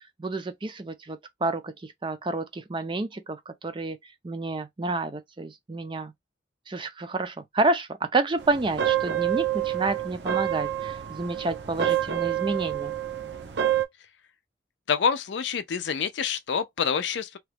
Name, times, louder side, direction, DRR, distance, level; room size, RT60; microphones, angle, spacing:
voice 1, 0.0-4.0 4.2-6.1 6.7-12.9, right 3 dB, 25° right, 0.5 m, -29 dB
sound 1, 8.4-13.9, right 11 dB, 70° right, 0.6 m, -28 dB
voice 2, 14.9-17.4, left 6 dB, 75° left, 0.4 m, -27 dB
2.9 x 2.3 x 3.3 m
head